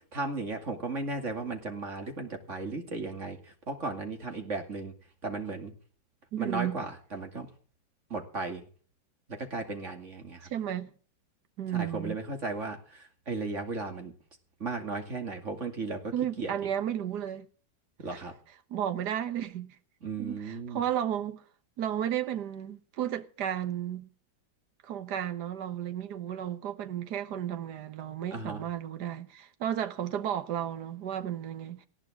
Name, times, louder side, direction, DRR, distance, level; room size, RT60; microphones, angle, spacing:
voice 1, 0.1-4.9 5.2-5.7 6.4-7.5 8.1-8.6 9.3-10.5 11.7-14.1 14.6-16.5 18.0-18.3 20.0-20.8 28.3-28.7, right 3 dB, 40° right, 2.8 m, -35 dB
voice 2, 6.3-6.8 10.4-10.9 11.6-12.2 16.1-17.5 18.1-18.2 18.7-19.8 20.2-21.4 21.8-24.1 24.8-31.9, right 10 dB, 65° right, 1.7 m, -33 dB
19.0 x 14.5 x 3.7 m
omnidirectional pair, 2.0 m